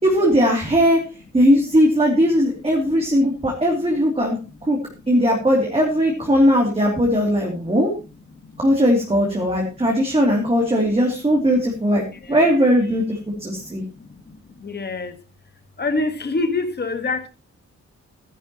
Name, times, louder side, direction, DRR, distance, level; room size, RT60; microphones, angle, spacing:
voice 1, 0.0-1.0 1.3-4.8 5.1-7.9 8.6-13.8, equal, 20° right, -1 dB, 2.8 m, -19 dB
voice 2, 14.6-15.1 15.8-17.3, left 3 dB, 35° left, 8 dB, 1.6 m, -25 dB
16.0 x 11.0 x 3.0 m, 0.31 s
wide cardioid pair, 160°, 29 cm